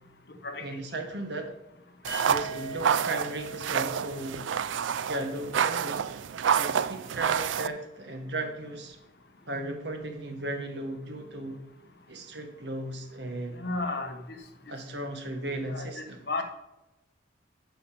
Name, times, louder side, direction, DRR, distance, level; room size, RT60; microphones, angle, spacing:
voice 1, 0.6-1.5 2.3-4.5 5.1-6.1 6.5-9.0 9.5-11.6 12.1-13.6 14.7-16.2, right 1 dB, 65° right, 5 dB, 1.6 m, -36 dB
sound 1, 2.0-7.7, right 8 dB, 85° right, 0.4 m, -28 dB
sound 2, 2.1-5.9, right 1 dB, 30° left, 3.2 m, -42 dB
voice 2, 13.6-14.2 15.7-16.4, left 3 dB, 55° left, 5 dB, 1.3 m, -33 dB
9.3 x 5.5 x 6.9 m, 0.97 s
head